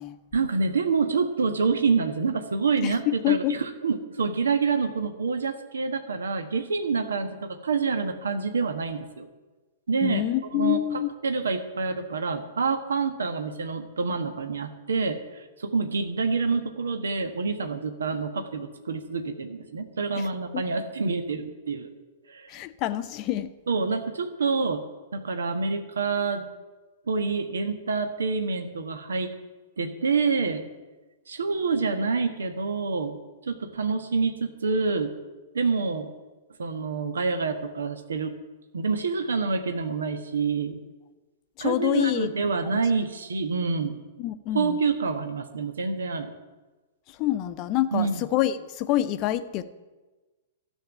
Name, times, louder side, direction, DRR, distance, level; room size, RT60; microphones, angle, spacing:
voice 1, 0.3-9.3 9.9-21.9 22.3-22.5 23.7-24.8 25.1-26.5 27.1-29.3 29.8-30.7 31.3-33.2 33.5-35.2 35.5-36.1 36.6-38.3 38.7-40.8 41.6-44.0 44.5-46.3 47.9-48.3, right 4 dB, 65° right, 7 dB, 1.3 m, -27 dB
voice 2, 2.8-3.5 10.0-11.1 20.1-20.2 20.5-20.6 22.5-23.5 41.6-42.3 44.2-44.8 47.2-49.6, left 13 dB, 35° left, 12 dB, 0.8 m, -26 dB
13.0 x 7.6 x 9.9 m, 1.2 s
figure-of-eight pair, 105°, 0 cm